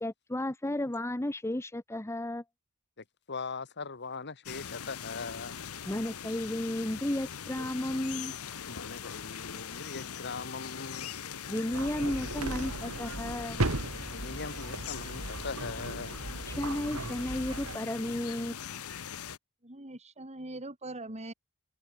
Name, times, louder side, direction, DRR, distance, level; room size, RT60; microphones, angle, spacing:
voice 1, 0.0-2.4 5.9-8.3 11.5-13.6 16.5-18.5, left 1 dB, 10° left, 0.8 m, -33 dB
voice 2, 3.3-5.7 8.7-11.1 14.1-16.2, left 4 dB, 50° left, 1.9 m, -40 dB
sound 1, 4.5-19.4, left 7 dB, 80° left, 1.1 m, -41 dB
sound 2, 11.7-17.8, right 2 dB, 70° right, 2.6 m, -36 dB
voice 3, 19.6-21.3, right 2 dB, 30° right, 4.5 m, -42 dB
head